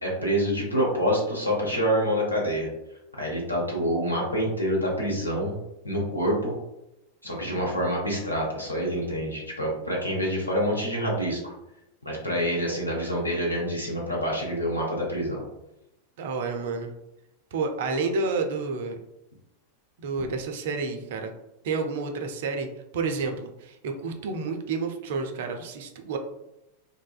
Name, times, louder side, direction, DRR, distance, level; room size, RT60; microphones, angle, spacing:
voice 1, 0.0-2.7 3.2-5.5 5.8-6.5 7.2-11.5 12.0-15.4, equal, 85° left, -3 dB, 0.8 m, -27 dB
voice 2, 16.2-16.9 17.5-19.0 20.0-21.3 21.6-22.7 22.9-26.2, right 4 dB, 55° right, 5 dB, 0.3 m, -30 dB
2.5 x 2.3 x 2.3 m, 0.89 s
figure-of-eight pair, 90°, 0 cm